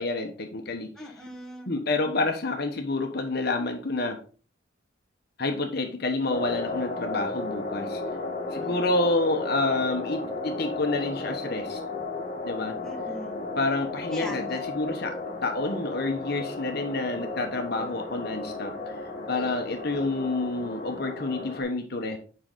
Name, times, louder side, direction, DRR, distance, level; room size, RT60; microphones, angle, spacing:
voice 1, 0.0-0.9 1.7-4.2 5.4-8.0 8.5-11.8 12.4-12.8 13.6-15.2 15.4-18.7 19.3-22.2, left 2 dB, 50° left, 4 dB, 1.1 m, -28 dB
voice 2, 0.9-1.7 8.5-8.9 12.8-13.4 14.1-14.6, left 1 dB, ahead, -2 dB, 1.3 m, -41 dB
sound 1, 6.3-21.6, left 2 dB, 35° left, 1.9 m, -34 dB
7.7 x 5.5 x 3.8 m, 0.39 s
head